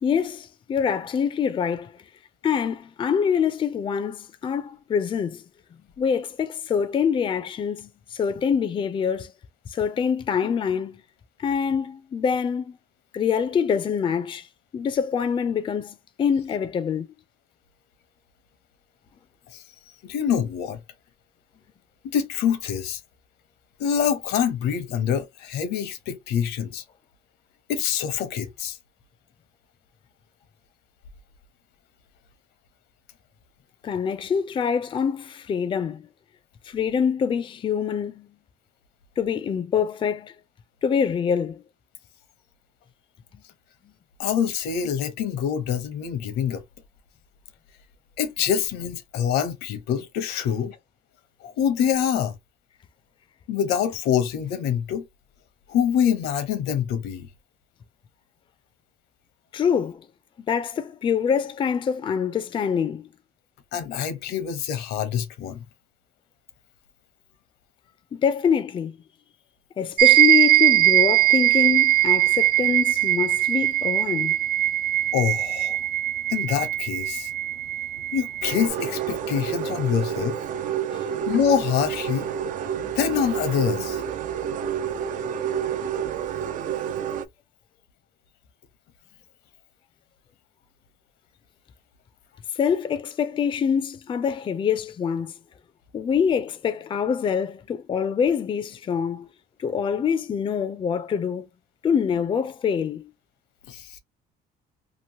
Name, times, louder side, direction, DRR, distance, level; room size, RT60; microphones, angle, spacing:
voice 1, 0.0-1.9 2.4-5.4 6.0-9.3 9.7-11.0 11.4-12.8 13.1-14.5 14.7-17.1 33.8-36.1 36.7-38.3 39.2-40.3 40.8-41.6 59.5-60.0 60.5-63.1 68.1-68.9 69.8-74.4 80.9-81.1 92.6-95.3 95.9-99.3 99.6-101.5 101.8-103.1, left 7 dB, 30° left, 0.4 m, -25 dB
voice 2, 20.0-20.8 22.1-23.0 23.8-26.8 27.7-28.8 44.2-46.6 48.2-50.8 51.4-52.3 53.5-55.0 55.7-57.3 63.7-65.6 75.1-75.8 76.3-77.3 78.1-80.4 81.3-82.3 82.9-84.0 103.7-104.0, left 8 dB, 80° left, 0.8 m, -25 dB
sound 1, 70.0-78.7, right 14 dB, 75° right, 0.9 m, -20 dB
sound 2, 78.4-87.3, right 8 dB, 50° right, 0.4 m, -29 dB
2.9 x 2.5 x 2.7 m
cardioid pair, 110°, 17 cm